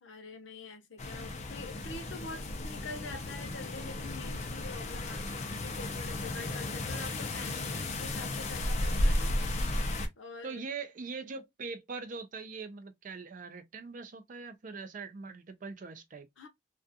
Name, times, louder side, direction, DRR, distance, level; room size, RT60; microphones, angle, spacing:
voice 1, 0.0-10.6 16.4-16.5, left 3 dB, 85° left, 0.7 m, -46 dB
sound 1, 1.0-10.1, left 1 dB, 35° left, 0.5 m, -34 dB
voice 2, 10.4-16.3, right 4 dB, 45° right, 0.4 m, -42 dB
2.3 x 2.3 x 2.6 m
head